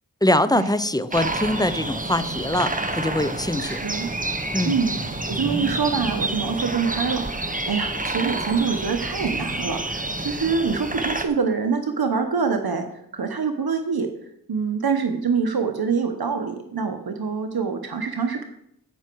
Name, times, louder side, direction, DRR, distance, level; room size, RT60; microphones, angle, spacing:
voice 1, 0.2-3.8 4.5-4.8, left 1 dB, 10° left, 13 dB, 0.7 m, -23 dB
sound 1, 1.1-11.2, right 2 dB, 20° right, 1.1 m, -28 dB
voice 2, 3.6-4.1 4.6-5.0 5.3-12.9 13.1-14.1 14.5-18.4, right 5 dB, 70° right, 5 dB, 1.0 m, -25 dB
15.5 x 6.1 x 4.6 m, 0.74 s
wide cardioid pair, 45°, 38 cm